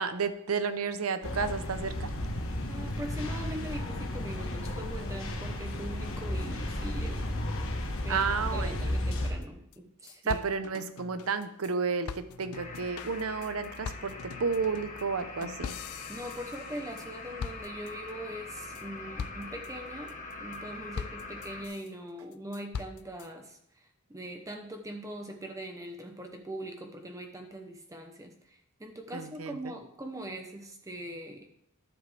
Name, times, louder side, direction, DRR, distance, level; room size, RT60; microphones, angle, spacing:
voice 1, 0.0-2.1 8.1-8.8 10.3-15.7 29.1-29.6, right 5 dB, 80° right, 11 dB, 0.7 m, -31 dB
sound 1, 1.2-9.3, left 1 dB, 65° left, 1.4 m, -33 dB
voice 2, 2.7-7.3 8.0-10.4 16.1-31.5, right 1 dB, 15° right, 4 dB, 0.8 m, -42 dB
sound 2, 9.4-9.5 9.7-9.8 10.1-11.7 12.1-17.1 17.4-18.1 18.5-18.8 19.2-19.7 20.1-20.6 21.0-21.9 22.3-23.3, left 6 dB, 85° left, 0.4 m, -42 dB
sound 3, 12.5-21.7, left 3 dB, 35° left, 1.0 m, -43 dB
11.0 x 7.6 x 3.3 m, 0.71 s
head